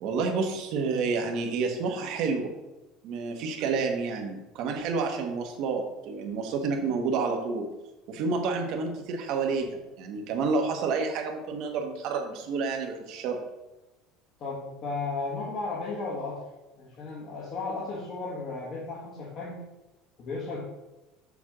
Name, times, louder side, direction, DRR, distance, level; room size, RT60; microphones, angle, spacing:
voice 1, 0.0-2.5 3.0-7.7 8.1-13.4, right 4 dB, 50° right, 3 dB, 1.2 m, -29 dB
voice 2, 14.4-16.4 16.8-19.6 20.2-20.6, left 3 dB, 40° left, -6 dB, 1.5 m, -34 dB
7.1 x 3.4 x 6.1 m, 1.0 s
cardioid pair, 165°, 0 cm